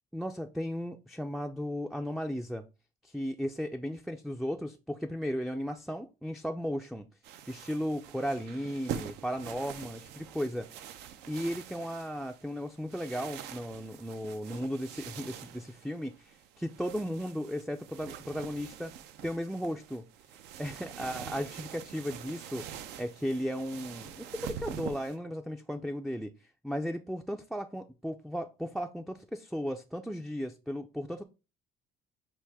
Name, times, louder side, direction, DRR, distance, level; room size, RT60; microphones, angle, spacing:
voice 1, 0.1-2.6 3.0-7.0 7.5-10.7 11.3-18.9 19.2-20.0 20.6-31.2, equal, ahead, 0.3 m, -35 dB
sound 1, 7.2-25.2, right 9 dB, 85° right, 0.5 m, -45 dB
5.9 x 2.5 x 3.4 m
cardioid pair, 110°, 17 cm